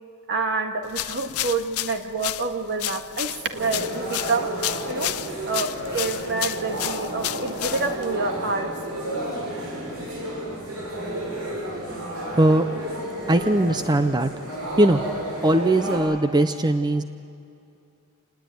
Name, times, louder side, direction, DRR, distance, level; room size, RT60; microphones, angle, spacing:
voice 1, 0.3-4.5 4.9-5.1 5.5-8.7, right 3 dB, 55° right, 5 dB, 1.8 m, -27 dB
sound 1, 0.9-8.1, left 14 dB, 75° left, 0.6 m, -31 dB
sound 2, 3.5-16.0, right 1 dB, 80° right, 6.8 m, -32 dB
voice 2, 13.3-14.3 14.8-15.0 15.4-17.0, right 1 dB, 20° right, 9 dB, 0.6 m, -19 dB
26.5 x 20.0 x 9.2 m, 2.6 s
head